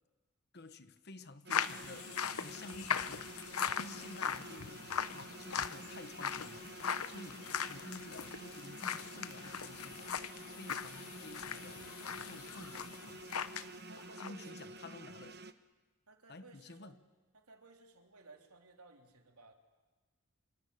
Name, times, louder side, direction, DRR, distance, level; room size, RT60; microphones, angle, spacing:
voice 1, 0.5-2.1 2.4-3.3 3.8-6.7 7.0-10.1 10.5-11.9 12.2-13.2 14.2-15.4 16.3-17.0, left 2 dB, 45° left, 1.2 m, -51 dB
sound 1, 1.5-13.7 14.0-14.3, left 7 dB, 80° left, 0.9 m, -40 dB
sound 2, 1.5-15.5, right 2 dB, 45° right, 1.2 m, -50 dB
voice 2, 13.9-14.7 16.1-17.0 17.3-19.5, right 3 dB, 85° right, 3.5 m, -58 dB
27.0 x 25.0 x 8.6 m
head